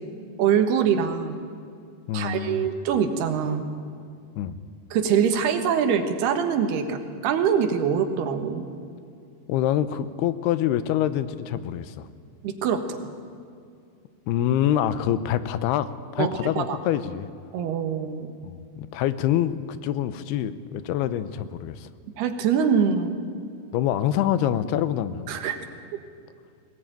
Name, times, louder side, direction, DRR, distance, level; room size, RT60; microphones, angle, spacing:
voice 1, 0.4-1.4 2.1-3.7 4.9-8.7 12.4-13.1 16.2-16.8 17.5-18.3 22.2-23.2 25.3-25.6, right 7 dB, 85° right, 7 dB, 3.5 m, -24 dB
voice 2, 2.1-2.7 4.4-4.6 9.5-12.1 14.3-17.3 18.4-21.9 23.7-25.3, left 11 dB, 90° left, 13 dB, 2.8 m, -26 dB
21.5 x 18.5 x 9.2 m, 2.3 s
omnidirectional pair, 4.5 m